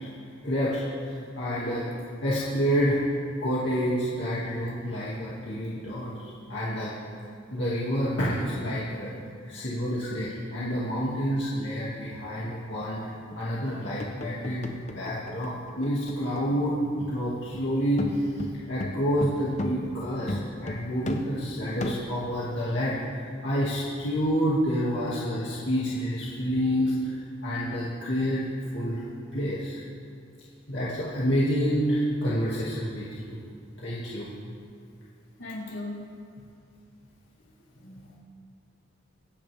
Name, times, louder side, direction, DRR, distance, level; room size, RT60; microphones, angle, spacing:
voice 1, 0.4-1.9 2.2-3.0 3.4-6.9 7.5-9.1 9.4-13.0 13.4-20.3 20.6-28.5 28.7-29.0 29.3-29.8 30.7-33.4 33.8-34.3, equal, 60° left, -8 dB, 2.4 m, -28 dB
sound 1, 13.1-16.7 17.0-17.2 17.5-22.1, left 1 dB, 35° left, 0.9 m, -36 dB
voice 2, 35.4-36.1 37.7-38.2, left 2 dB, 75° left, -5 dB, 3.8 m, -39 dB
25.0 x 9.9 x 3.6 m, 2.4 s
head